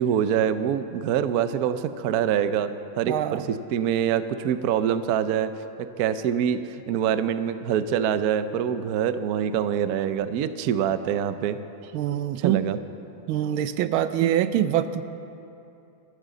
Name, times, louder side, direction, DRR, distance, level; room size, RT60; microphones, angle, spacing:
voice 1, 0.0-5.5 5.8-11.6 12.4-12.8 14.2-14.3, right 9 dB, 70° right, 11 dB, 0.9 m, -25 dB
voice 2, 3.1-3.5 11.9-12.6 13.3-15.0, right 11 dB, 85° right, 12 dB, 1.5 m, -24 dB
22.0 x 14.0 x 3.9 m, 2.8 s
omnidirectional pair, 2.2 m